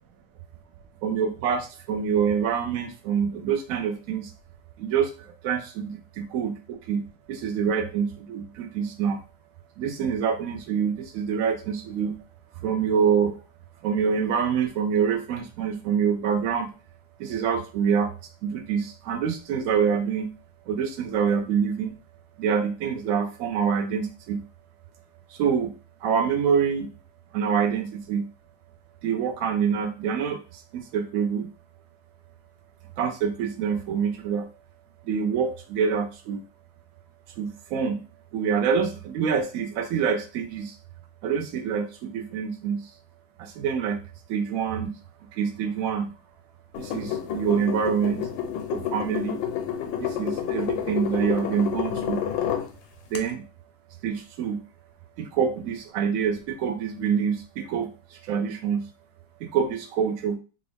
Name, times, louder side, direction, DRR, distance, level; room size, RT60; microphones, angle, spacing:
voice 1, 1.0-4.3 4.8-5.1 5.4-5.9 6.3-6.5 6.9-7.0 7.3-9.2 9.8-12.1 12.6-13.3 13.8-16.7 17.2-18.1 18.4-20.3 20.7-21.9 22.4-24.4 25.4-25.7 26.0-26.9 27.3-28.2 29.0-30.4 30.7-31.5 33.0-34.5 35.1-36.4 37.4-38.0 38.3-40.7 41.2-42.8 43.4-44.0 44.3-44.9 45.3-46.1 46.8-48.2 48.7-49.4 50.0-52.2 53.1-53.4 54.0-54.6 55.2-57.9 58.3-58.8 59.5-60.4, right 7 dB, 75° right, 7 dB, 0.8 m, -26 dB
sound 1, 46.7-52.7 53.1-53.2, left 9 dB, 90° left, 1.3 m, -29 dB
3.7 x 2.4 x 3.3 m, 0.34 s
omnidirectional pair, 2.0 m